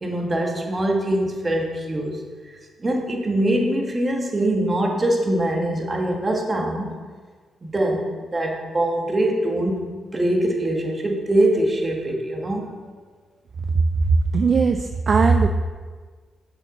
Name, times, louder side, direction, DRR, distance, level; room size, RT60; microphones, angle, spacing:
voice 1, 0.0-2.2 2.5-6.9 7.6-12.7, right 1 dB, 30° right, 1 dB, 1.7 m, -23 dB
voice 2, 14.3-15.5, right 4 dB, 50° right, 5 dB, 0.5 m, -18 dB
6.6 x 6.4 x 5.3 m, 1.5 s
cardioid pair, 70°, 0 cm